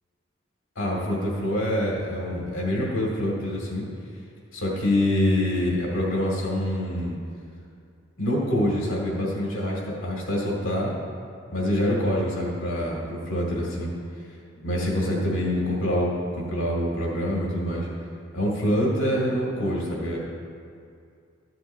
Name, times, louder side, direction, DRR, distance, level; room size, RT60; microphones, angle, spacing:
voice 1, 0.8-3.8 4.5-7.2 8.2-10.9 11.5-13.9 14.6-17.9 18.3-20.2, left 1 dB, 75° left, -3 dB, 2.0 m, -25 dB
13.5 x 12.0 x 2.7 m, 2.4 s
head